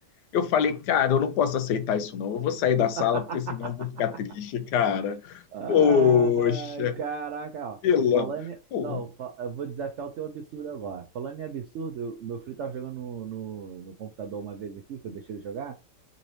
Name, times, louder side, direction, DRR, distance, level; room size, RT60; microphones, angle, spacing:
voice 1, 0.3-5.4 5.7-7.0 7.8-8.3 8.7-9.0, left 8 dB, 75° left, 1.1 m, -24 dB
voice 2, 2.8-3.9 5.5-7.9 8.1-15.8, right 6 dB, 80° right, 0.6 m, -35 dB
3.9 x 2.6 x 3.1 m
omnidirectional pair, 1.9 m